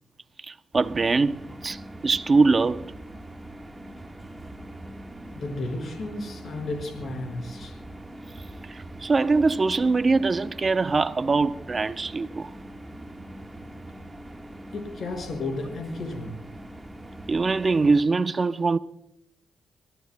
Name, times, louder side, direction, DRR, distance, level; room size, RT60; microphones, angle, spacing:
voice 1, 0.5-2.9 8.7-12.5 17.3-18.8, right 3 dB, 35° right, 0.7 m, -23 dB
sound 1, 0.7-18.0, right 1 dB, 15° right, 1.4 m, -42 dB
voice 2, 5.3-7.8 14.7-16.4, left 2 dB, 55° left, 5.2 m, -33 dB
27.0 x 14.5 x 2.2 m
cardioid pair, 95°, 0 cm